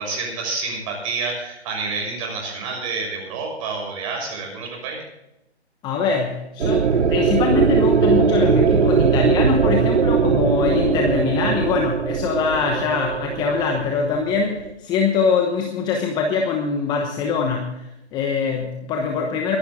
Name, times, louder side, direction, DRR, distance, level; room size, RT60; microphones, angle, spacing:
voice 1, 0.0-5.0, right 4 dB, 30° right, 1 dB, 6.3 m, -28 dB
voice 2, 5.8-19.6, left 5 dB, 10° left, 3 dB, 1.0 m, -23 dB
sound 1, 6.6-14.7, right 5 dB, 80° right, 1.1 m, -20 dB
22.0 x 11.5 x 3.7 m, 0.88 s
hypercardioid pair, 145°, 33 cm